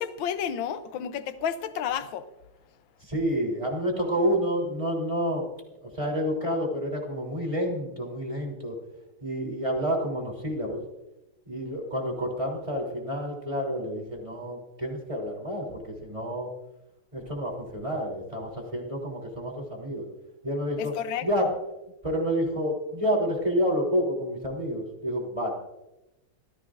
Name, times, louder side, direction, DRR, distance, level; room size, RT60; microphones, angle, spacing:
voice 1, 0.0-2.3 20.8-21.5, left 8 dB, 90° left, 1.6 m, -31 dB
voice 2, 3.0-5.4 5.8-8.8 9.2-10.8 11.5-16.5 17.1-20.1 20.4-20.9 21.2-21.5 22.0-25.5, equal, 15° right, 3.6 m, -29 dB
25.5 x 16.0 x 2.6 m
omnidirectional pair, 2.0 m